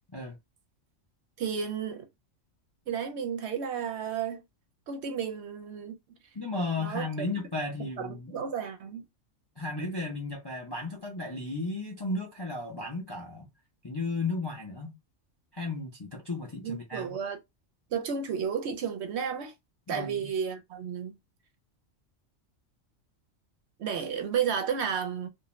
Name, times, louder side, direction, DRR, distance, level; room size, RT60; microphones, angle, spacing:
voice 1, 1.4-2.1 2.9-4.4 4.9-6.0 6.8-7.1 8.0-9.0 16.6-17.4 17.9-19.5 19.9-21.1 23.8-25.3, right 7 dB, 65° right, 0.8 m, -32 dB
voice 2, 6.3-8.3 9.6-13.5 13.8-15.0 15.5-17.1 19.9-20.3, left 2 dB, 35° left, 0.4 m, -34 dB
2.5 x 2.1 x 3.0 m
omnidirectional pair, 1.3 m